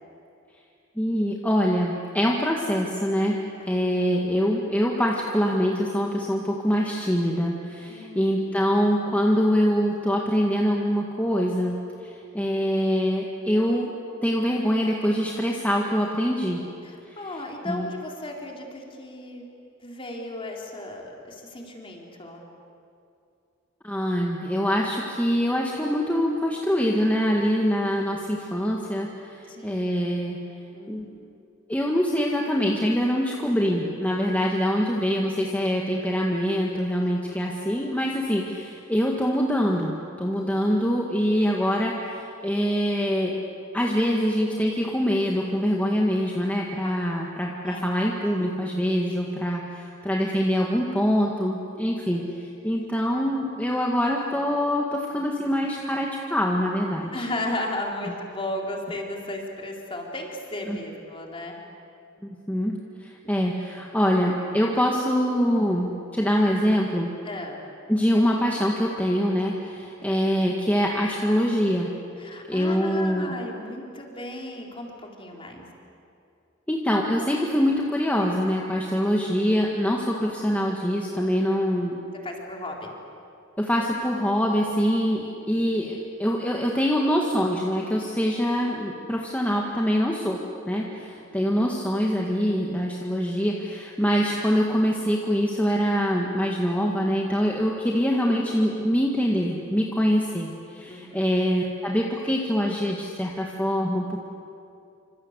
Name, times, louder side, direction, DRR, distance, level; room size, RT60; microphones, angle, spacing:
voice 1, 1.0-3.4 3.7-11.8 12.0-13.9 14.2-16.6 17.7-17.9 23.8-30.4 30.9-31.1 31.7-43.4 43.7-57.1 60.7-60.8 62.2-67.1 67.9-71.9 72.5-73.3 76.7-82.0 83.6-90.4 90.7-104.2, equal, 10° left, -2 dB, 2.0 m, -24 dB
voice 2, 7.9-8.9 16.8-19.5 19.8-22.4 29.5-29.8 30.7-31.0 31.3-31.4 47.7-47.9 52.1-52.2 57.1-61.5 63.2-63.3 67.2-67.6 72.2-75.7 82.2-82.9 91.1-91.3 100.9-101.2, left 1 dB, 25° left, 0 dB, 4.0 m, -35 dB
27.5 x 26.0 x 8.2 m, 2.6 s
head